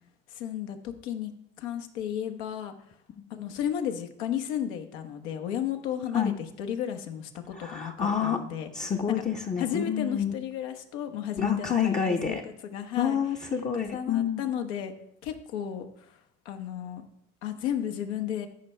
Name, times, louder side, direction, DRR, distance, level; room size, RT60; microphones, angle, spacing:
voice 1, 0.3-1.3 1.6-2.7 3.3-8.7 9.1-9.2 9.6-13.2 13.9-14.9 15.2-16.2 16.4-17.1 17.4-18.5, left 9 dB, 75° left, 6 dB, 1.1 m, -33 dB
voice 2, 7.5-8.4 8.7-10.3 11.4-12.4 13.0-14.4, left 7 dB, 20° left, 1 dB, 0.7 m, -28 dB
13.5 x 5.3 x 3.3 m, 0.77 s
hypercardioid pair, 70°, 34 cm